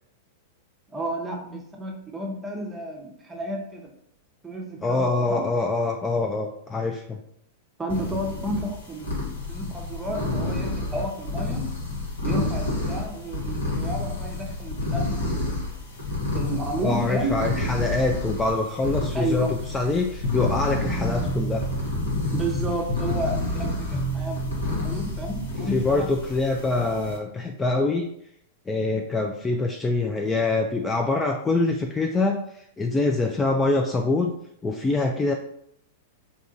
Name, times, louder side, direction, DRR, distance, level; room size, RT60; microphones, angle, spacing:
voice 1, 0.9-3.9 4.4-5.4 7.8-11.7 12.2-15.5 16.3-17.4 19.1-19.5 22.3-26.1, right 1 dB, 15° right, 0 dB, 0.8 m, -31 dB
voice 2, 4.8-7.2 16.8-21.6 25.7-28.1 28.7-32.4 32.8-34.3 34.6-35.3, left 3 dB, 15° left, 2 dB, 0.3 m, -24 dB
sound 1, 7.9-27.2, left 2 dB, 90° left, 1.4 m, -30 dB
sound 2, 20.2-25.5, right 1 dB, 70° left, 1.2 m, -31 dB
3.5 x 2.8 x 2.6 m, 0.71 s
hypercardioid pair, 110°, 0 cm